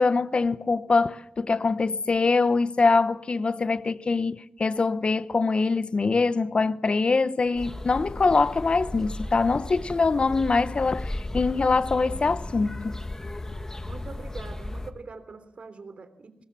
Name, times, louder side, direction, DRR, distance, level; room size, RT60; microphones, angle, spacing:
voice 1, 0.0-12.9, left 4 dB, 55° left, 0.9 m, -23 dB
sound 1, 7.6-14.9, left 1 dB, 25° left, 2.3 m, -35 dB
voice 2, 13.7-16.4, right 4 dB, 65° right, 3.3 m, -43 dB
24.0 x 20.0 x 7.5 m
cardioid pair, 55°, 2 cm